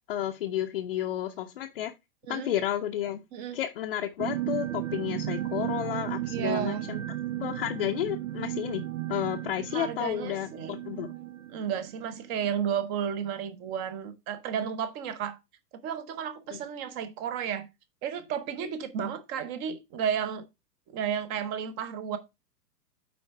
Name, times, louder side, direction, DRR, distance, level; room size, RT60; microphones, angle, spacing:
voice 1, 0.1-1.9 2.3-3.2 3.5-7.0 7.4-8.8 9.1-11.2 16.5-16.6, left 12 dB, 35° left, 0.7 m, -32 dB
sound 1, 4.2-12.6, right 13 dB, 55° right, 0.5 m, -35 dB
voice 2, 6.3-6.9 9.7-10.8 11.5-15.4 15.8-17.7 18.0-20.4 20.9-22.2, right 8 dB, 20° right, 0.7 m, -32 dB
9.2 x 3.9 x 4.5 m
figure-of-eight pair, 115°, 48 cm